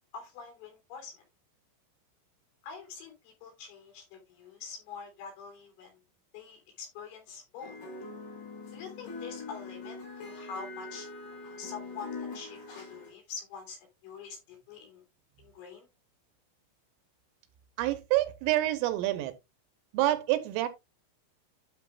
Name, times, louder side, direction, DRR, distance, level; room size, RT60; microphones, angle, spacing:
voice 1, 0.1-1.2 2.6-6.0 6.3-7.8 8.7-11.1 11.4-15.0 15.4-15.9, left 6 dB, 70° left, 5.7 m, -45 dB
sound 1, 7.6-13.1, left 3 dB, 85° left, 6.7 m, -43 dB
voice 2, 17.8-19.3 19.9-20.7, right 15 dB, 80° right, 3.3 m, -27 dB
12.5 x 6.5 x 2.4 m
omnidirectional pair, 6.0 m